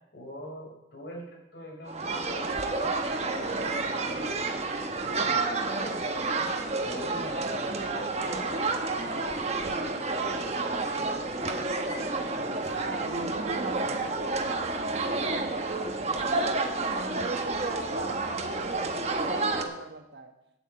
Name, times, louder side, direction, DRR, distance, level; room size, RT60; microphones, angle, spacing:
voice 1, 0.1-2.5 2.7-2.9 3.3-4.4 5.0-6.5 6.8-11.0 11.4-11.7, equal, 70° left, -2 dB, 5.0 m, -44 dB
sound 1, 1.9-19.6, right 3 dB, 35° right, 1.1 m, -30 dB
voice 2, 12.4-16.8 17.1-20.4, right 3 dB, 65° right, 5 dB, 1.4 m, -41 dB
9.0 x 8.7 x 7.7 m, 0.87 s
head